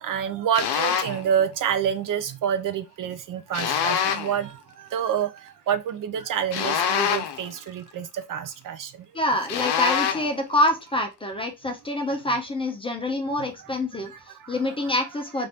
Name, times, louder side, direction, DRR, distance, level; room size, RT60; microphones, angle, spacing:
voice 1, 0.0-4.5 4.8-5.3 5.7-8.9, right 9 dB, 55° right, 0.5 m, -27 dB
sound 1, 0.5-1.2 3.5-4.4 6.5-7.5 9.5-10.4, left 8 dB, 80° left, 0.6 m, -25 dB
voice 2, 9.1-15.5, left 1 dB, 15° left, 0.4 m, -26 dB
2.8 x 2.6 x 3.3 m
cardioid pair, 165°, 39 cm